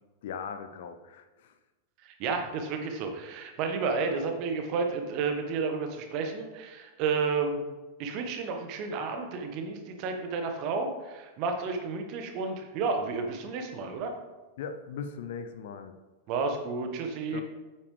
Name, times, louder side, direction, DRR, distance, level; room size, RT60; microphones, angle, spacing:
voice 1, 0.2-1.5 14.6-15.9 17.3-17.4, left 6 dB, 55° left, 8 dB, 0.7 m, -39 dB
voice 2, 2.0-7.6 8.0-14.1 16.3-17.4, right 4 dB, 40° right, 5 dB, 1.3 m, -31 dB
9.0 x 8.5 x 3.3 m, 1.2 s
figure-of-eight pair, 90°, 0 cm